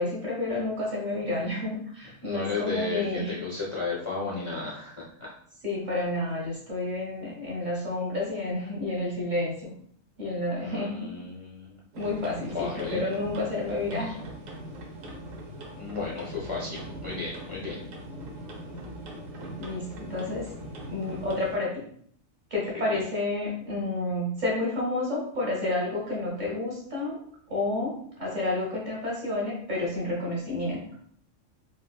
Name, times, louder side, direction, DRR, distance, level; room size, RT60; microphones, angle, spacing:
voice 1, 0.0-3.3 5.6-9.7 10.2-11.1 12.0-14.2 19.6-20.5 20.8-21.9 22.5-27.2 27.5-30.8, left 2 dB, 40° right, -4 dB, 1.0 m, -30 dB
voice 2, 2.2-5.3 10.6-11.8 12.4-13.0 15.8-17.8 22.7-23.0, left 4 dB, 35° left, -7 dB, 0.5 m, -34 dB
sound 1, 11.9-21.6, right 1 dB, 90° right, 1.1 m, -41 dB
3.7 x 2.3 x 2.3 m, 0.62 s
omnidirectional pair, 1.3 m